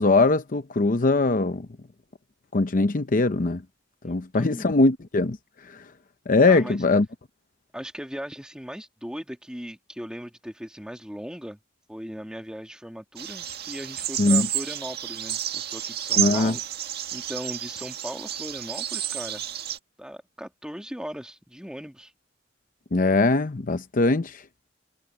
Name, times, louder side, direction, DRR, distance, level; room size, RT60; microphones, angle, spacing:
voice 1, 0.0-1.7 2.5-3.6 4.0-5.4 5.7-5.8 6.3-7.1 14.2-14.5 16.2-16.5 22.9-24.4, left 3 dB, 45° left, 0.7 m, -21 dB
voice 2, 4.0-4.7 6.5-6.8 7.7-11.6 11.9-16.6 17.1-19.4 20.0-22.1, equal, 5° right, 2.1 m, -38 dB
sound 1, 13.2-19.8, right 11 dB, 55° right, 1.9 m, -30 dB
head